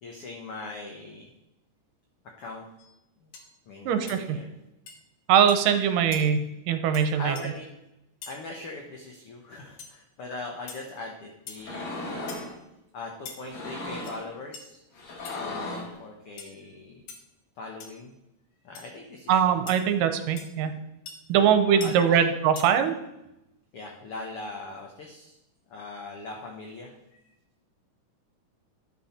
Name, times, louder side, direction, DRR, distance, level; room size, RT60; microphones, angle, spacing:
voice 1, 0.0-1.3 2.4-2.6 3.2-3.3 3.7-4.5 7.2-7.6 8.3-12.5 12.9-14.8 15.4-17.0 17.6-18.1 18.6-19.5 21.3-22.2 23.7-25.4 25.7-27.2, left 2 dB, 70° left, 1 dB, 1.4 m, -40 dB
sound 1, 2.8-2.9 3.3-3.5 4.1-4.2 4.9-5.0 5.5-5.7 6.1-6.2 6.9-7.1 7.4-7.5 8.2-8.4 9.8-9.9 10.7-10.8 11.5-11.7 12.3-12.5 13.3-13.4 13.9-14.2 14.5-14.6 15.2-15.3 16.4-16.5 17.1-17.2 17.8-18.0 18.7-18.8 19.7-19.8 20.4-20.5 21.1-21.2 21.8-21.9 22.6-22.7, left 5 dB, 90° left, 3.0 m, -42 dB
voice 2, 3.9-4.4 5.3-7.3 19.3-20.7 21.3-22.9, right 8 dB, 80° right, 8 dB, 2.3 m, -22 dB
sound 2, 11.6-12.5 13.4-14.3 14.9-16.0, left 2 dB, 55° left, 2.8 m, -36 dB
11.0 x 6.3 x 4.3 m, 0.88 s
omnidirectional pair, 3.9 m